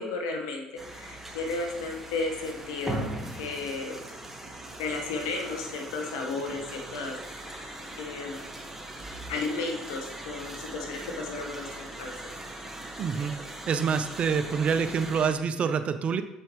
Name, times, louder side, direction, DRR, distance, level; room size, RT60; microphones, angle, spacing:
voice 1, 0.0-3.0 3.3-4.0 4.8-8.5 9.3-12.3, left 3 dB, 85° left, 2 dB, 1.3 m, -34 dB
sound 1, 0.8-15.3, right 1 dB, 10° right, 1.4 m, -40 dB
voice 2, 13.0-13.3 13.7-16.2, right 6 dB, 50° right, 10 dB, 0.6 m, -26 dB
6.8 x 5.6 x 3.1 m, 0.96 s
hypercardioid pair, 65°, 3 cm